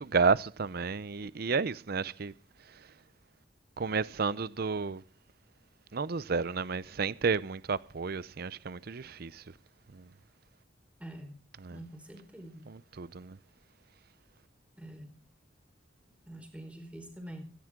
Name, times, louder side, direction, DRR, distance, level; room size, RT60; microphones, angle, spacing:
voice 1, 0.0-2.3 3.8-5.0 5.9-9.4 9.9-10.0 11.6-11.8 12.7-13.4, right 5 dB, 55° right, 0.6 m, -31 dB
voice 2, 11.0-11.4 11.7-12.7 14.8-15.1 16.3-17.4, right 1 dB, 5° right, 4.5 m, -45 dB
17.5 x 15.5 x 3.7 m
head